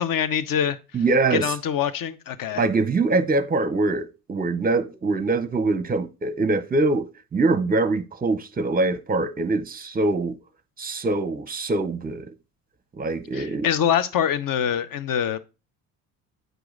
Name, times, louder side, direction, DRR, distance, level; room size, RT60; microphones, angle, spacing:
voice 1, 0.0-0.8 1.3-2.6 13.3-15.4, left 9 dB, 45° left, 0.8 m, -24 dB
voice 2, 0.9-1.5 2.5-10.4 10.8-12.3 12.9-13.7, right 3 dB, 20° right, 0.7 m, -23 dB
7.7 x 4.9 x 3.8 m
hypercardioid pair, 55°, 46 cm